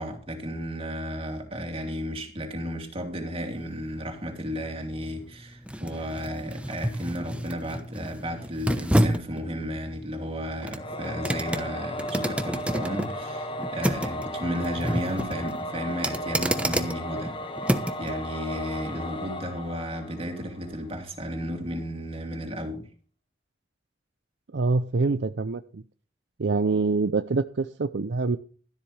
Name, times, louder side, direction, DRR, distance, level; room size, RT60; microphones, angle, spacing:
voice 1, 0.0-17.3 18.0-22.8, equal, 35° right, 2.8 m, -33 dB
sound 1, 3.4-18.1 18.5-18.7, equal, 5° right, 1.0 m, -30 dB
Singing / Musical instrument, 10.8-20.8, left 1 dB, 30° left, 1.2 m, -35 dB
voice 2, 24.5-25.8 26.4-28.4, right 3 dB, 70° right, 0.6 m, -25 dB
13.0 x 11.5 x 3.3 m
head